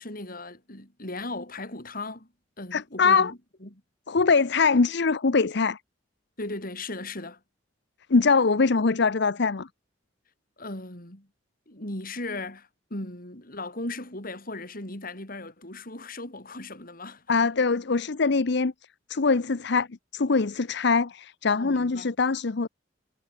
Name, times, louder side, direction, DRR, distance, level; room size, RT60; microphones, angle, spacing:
voice 1, 0.0-2.3 2.6-3.8 6.4-7.4 10.6-11.3 11.7-17.3 21.6-22.1, left 2 dB, 50° left, 6.5 m, -37 dB
voice 2, 2.7-3.3 4.1-5.8 8.1-9.7 17.3-18.7 19.1-19.9 20.1-22.7, left 4 dB, 65° left, 0.8 m, -23 dB
head